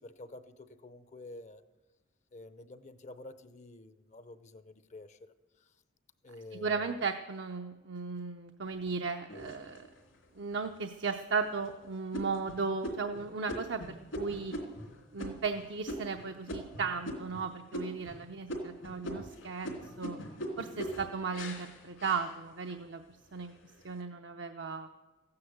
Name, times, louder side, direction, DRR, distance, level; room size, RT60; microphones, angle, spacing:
voice 1, 0.0-1.6 2.3-5.3 5.6-5.7 6.2-7.0, left 2 dB, 35° left, 12 dB, 0.7 m, -49 dB
voice 2, 6.5-9.8 10.4-14.6 15.1-20.2 20.6-23.0 23.3-23.5 23.8-24.9, right 5 dB, 60° right, 5 dB, 0.6 m, -36 dB
sound 1, 9.3-10.2 10.7-10.8 11.3-11.7 12.1-17.4 17.7-18.2 18.5-22.8 23.3-23.8, equal, 80° left, 3.0 m, -41 dB
14.5 x 9.7 x 7.9 m, 1.2 s
head